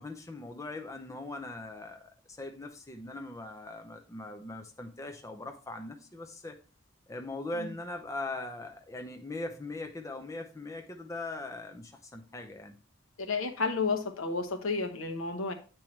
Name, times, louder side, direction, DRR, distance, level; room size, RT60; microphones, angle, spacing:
voice 1, 0.0-6.6 7.1-12.7, left 2 dB, 15° left, 0.6 m, -40 dB
voice 2, 13.2-15.5, left 4 dB, 75° left, 1.0 m, -31 dB
8.7 x 4.5 x 3.1 m
head